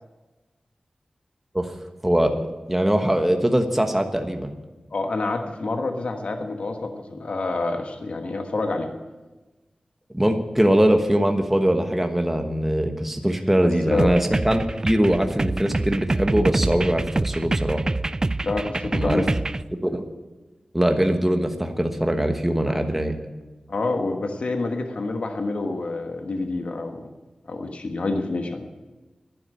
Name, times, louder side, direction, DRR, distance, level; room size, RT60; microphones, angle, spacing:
voice 1, 2.0-4.5 10.1-17.8 18.9-19.3 19.8-20.0 20.7-23.2, right 1 dB, 10° right, 5 dB, 1.2 m, -22 dB
voice 2, 4.9-8.9 13.6-14.2 18.4-19.3 22.7-22.8 23.7-27.1 27.5-28.6, left 3 dB, 70° left, 5 dB, 1.3 m, -27 dB
sound 1, 14.0-19.6, right 2 dB, 30° right, 0.4 m, -26 dB
11.5 x 10.5 x 8.8 m, 1.2 s
wide cardioid pair, 75°, 2 cm